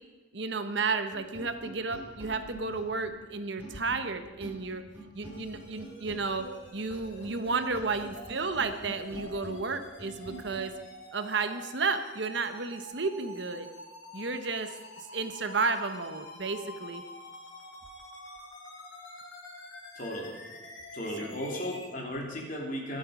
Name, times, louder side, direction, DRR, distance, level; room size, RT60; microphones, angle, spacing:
voice 1, 0.3-4.8 5.1-10.7 11.1-13.7 14.1-14.7 15.0-17.0 21.2-21.3, right 4 dB, 65° right, 9 dB, 1.0 m, -32 dB
sound 1, 1.1-10.7, right 1 dB, 10° right, 3.3 m, -46 dB
sound 2, 5.3-21.9, left 2 dB, 70° left, 3.5 m, -48 dB
voice 2, 19.9-20.4 20.9-23.0, equal, 40° left, -1 dB, 3.1 m, -35 dB
23.0 x 7.9 x 5.2 m, 1.2 s
head